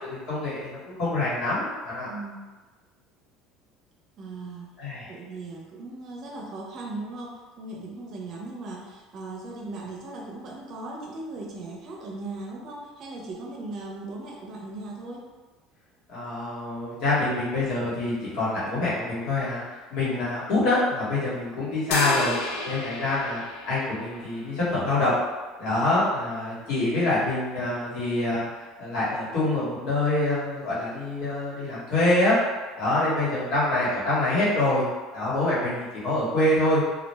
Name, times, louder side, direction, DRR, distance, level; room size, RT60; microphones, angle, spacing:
voice 1, 0.0-2.1 4.8-5.1 16.1-19.6 19.9-25.1 25.6-28.5 28.8-32.3 32.8-34.9 35.1-36.8, left 2 dB, 65° left, -9 dB, 1.3 m, -25 dB
voice 2, 2.1-2.5 4.2-4.7 5.0-15.3, right 2 dB, 55° right, -1 dB, 0.6 m, -38 dB
sound 1, 21.9-24.5, left 3 dB, 85° left, 0.3 m, -32 dB
2.4 x 2.1 x 3.3 m, 1.3 s
supercardioid pair, 105°, 0 cm